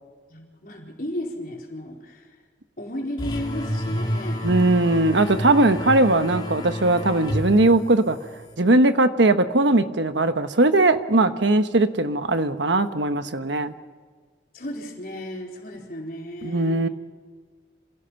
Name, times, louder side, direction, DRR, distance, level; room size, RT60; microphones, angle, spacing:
voice 1, 0.3-2.2 2.8-4.5 14.5-16.9, left 1 dB, 50° left, -1 dB, 4.5 m, -34 dB
sound 1, 3.2-8.5, left 1 dB, 25° left, 2.7 m, -30 dB
voice 2, 4.4-8.2 8.6-13.7 16.4-16.9, right 2 dB, 85° right, 9 dB, 1.2 m, -19 dB
27.0 x 16.5 x 5.9 m, 1.5 s
head